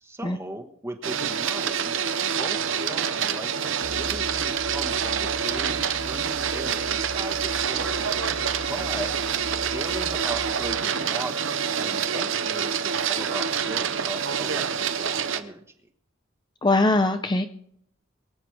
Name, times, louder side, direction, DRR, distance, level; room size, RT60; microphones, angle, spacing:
voice 1, 0.0-8.0 8.7-9.2 9.5-11.5 11.8-15.6, right 1 dB, 15° right, 6 dB, 1.3 m, -38 dB
Printer, 1.0-15.4, right 7 dB, 70° right, 0.8 m, -27 dB
sound 1, 3.8-10.7, right 1 dB, 90° right, 2.6 m, -40 dB
voice 2, 16.6-17.5, left 2 dB, 20° left, 8 dB, 0.5 m, -21 dB
23.5 x 8.0 x 4.6 m, 0.70 s
head